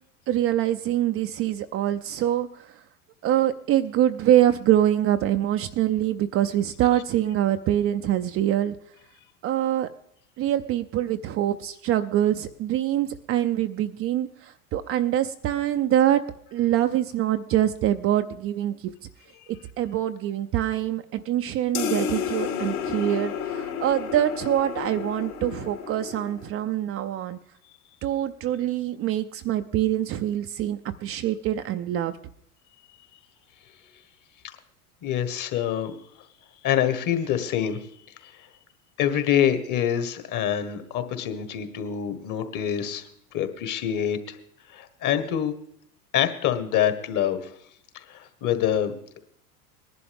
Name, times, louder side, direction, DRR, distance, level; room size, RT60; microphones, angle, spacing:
voice 1, 0.3-2.8 3.2-8.8 9.4-9.9 10.4-16.2 16.5-18.9 19.8-27.4 28.0-32.2, right 12 dB, 30° right, 8 dB, 0.5 m, -24 dB
sound 1, 21.7-26.6, left 7 dB, 70° left, 3.4 m, -31 dB
voice 2, 35.0-35.9 36.6-37.8 38.2-38.3 39.0-44.4 44.7-45.6 46.1-47.5 47.9-49.2, left 10 dB, 40° left, 10 dB, 1.5 m, -26 dB
20.0 x 11.0 x 3.5 m, 0.70 s
hypercardioid pair, 85°, 46 cm